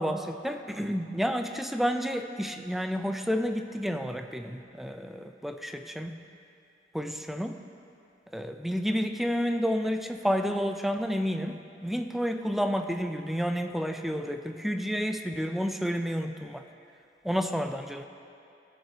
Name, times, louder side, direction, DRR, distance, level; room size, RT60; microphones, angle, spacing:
voice 1, 0.0-6.2 6.9-7.6 8.3-16.6 17.2-18.0, equal, ahead, 6 dB, 0.4 m, -30 dB
18.0 x 7.3 x 2.8 m, 2.6 s
head